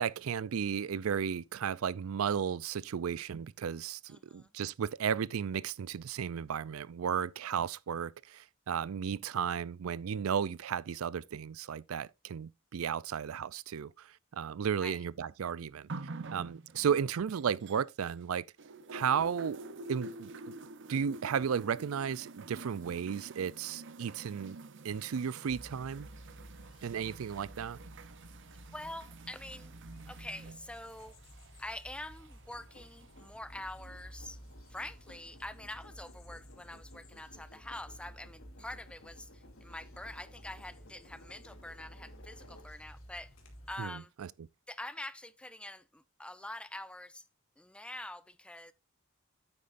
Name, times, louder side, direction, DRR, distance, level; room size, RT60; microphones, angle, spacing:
voice 1, 0.0-15.9 16.3-18.4 18.9-19.6 19.9-20.3 20.9-24.6 24.8-26.1 26.8-27.8 43.8-44.3, right 7 dB, 90° right, 0.4 m, -34 dB
voice 2, 4.1-4.5 14.8-15.0 28.7-29.7 30.1-31.2 31.6-34.4 34.7-43.3 43.7-44.1 44.7-47.2 47.6-48.7, left 1 dB, 5° left, 0.5 m, -45 dB
sound 1, 15.9-18.3 18.6-33.3 34.2-34.3, right 2 dB, 60° right, 0.7 m, -48 dB
sound 2, 25.5-43.8, equal, 85° left, 3.1 m, -53 dB
sound 3, 32.5-43.0 43.4-43.5, left 1 dB, 65° left, 2.5 m, -59 dB
9.6 x 8.5 x 2.5 m
head